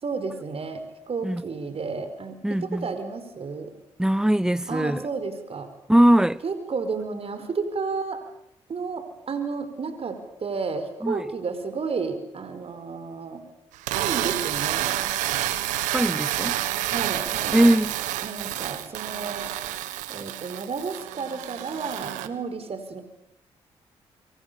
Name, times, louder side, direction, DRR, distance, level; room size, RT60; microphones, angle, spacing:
voice 1, 0.0-3.7 4.7-5.7 6.4-8.2 8.7-13.4 13.9-15.0 16.9-17.6 18.2-19.5 20.1-23.0, right 4 dB, 50° right, 5.0 m, -32 dB
voice 2, 2.4-2.9 4.0-5.1 5.9-6.4 11.0-11.3 15.9-16.6 17.5-17.9, right 1 dB, 5° right, 1.0 m, -21 dB
sound 1, 13.7-22.3, right 14 dB, 90° right, 1.6 m, -29 dB
29.0 x 25.0 x 7.0 m
supercardioid pair, 55°, 13 cm